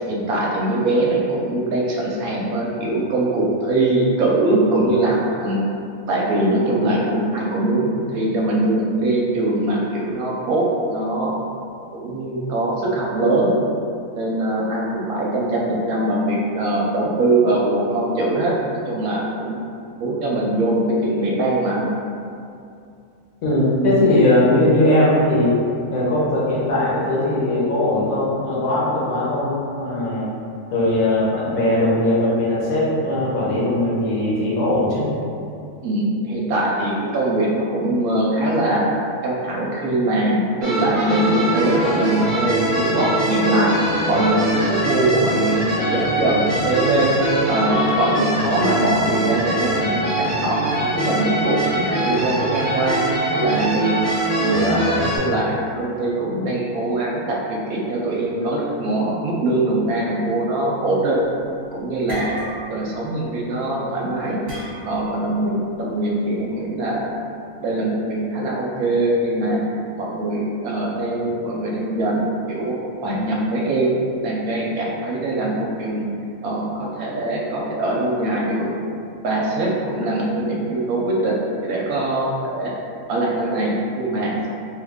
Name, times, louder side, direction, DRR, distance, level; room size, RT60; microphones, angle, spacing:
voice 1, 0.1-5.6 6.1-11.3 11.9-13.6 14.1-18.5 18.9-19.6 20.0-21.9 35.8-38.8 39.2-43.7 44.1-47.2 47.5-53.0 53.3-53.9 54.4-61.2 61.7-62.3 62.7-64.4 64.9-65.5 65.8-67.1 67.5-69.6 70.0-72.8 73.0-74.0 74.2-76.1 76.4-78.7 79.2-81.4 81.6-82.7 83.1-84.5, right 2 dB, 75° right, -3 dB, 1.0 m, -22 dB
voice 2, 23.4-25.5 25.9-30.3 30.7-35.1, left 1 dB, 65° left, -7 dB, 1.2 m, -19 dB
sound 1, 40.6-55.2, right 1 dB, 45° right, 0.4 m, -23 dB
sound 2, 61.2-61.5 61.8-62.9 63.2-63.5 64.5-65.2, right 1 dB, 30° right, 0.9 m, -33 dB
3.1 x 2.3 x 3.5 m, 2.5 s
omnidirectional pair, 1.6 m